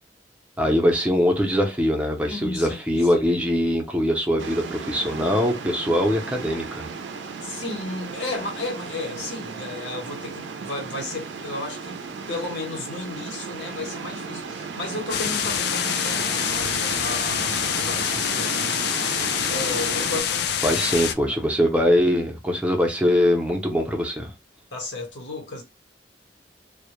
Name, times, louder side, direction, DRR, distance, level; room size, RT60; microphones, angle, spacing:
voice 1, 0.6-6.9 20.6-24.3, equal, 5° right, 0.5 m, -22 dB
voice 2, 2.3-3.1 7.4-18.9 19.5-20.8 24.7-25.6, left 2 dB, 80° left, 0.9 m, -34 dB
sound 1, 4.4-20.2, right 5 dB, 80° right, 0.4 m, -35 dB
sound 2, 15.1-21.1, left 9 dB, 60° left, 0.3 m, -26 dB
2.1 x 2.1 x 2.9 m
head